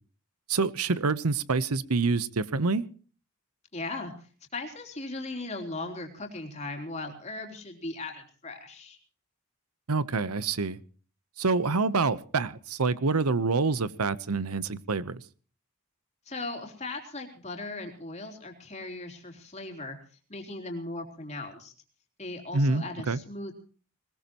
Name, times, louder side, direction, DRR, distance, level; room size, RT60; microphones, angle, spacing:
voice 1, 0.5-2.8 9.9-10.8 11.4-15.2 22.5-23.2, right 4 dB, 90° right, 17 dB, 0.9 m, -27 dB
voice 2, 3.7-4.1 4.5-9.0 16.3-20.0 20.3-21.7 22.2-23.5, left 2 dB, 30° left, 4 dB, 3.6 m, -38 dB
21.0 x 20.5 x 3.0 m, 0.40 s
head